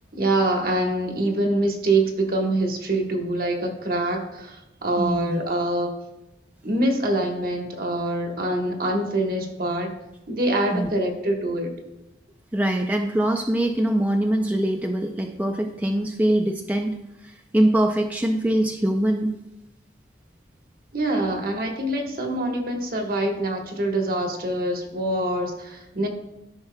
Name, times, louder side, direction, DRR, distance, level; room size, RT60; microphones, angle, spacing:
voice 1, 0.1-5.9 6.6-9.9 10.3-11.7 20.9-26.1, right 1 dB, 55° right, 2 dB, 1.3 m, -25 dB
voice 2, 5.0-5.4 10.7-10.9 12.5-19.4, right 1 dB, 10° right, 3 dB, 0.4 m, -23 dB
13.0 x 5.8 x 2.2 m, 0.97 s
head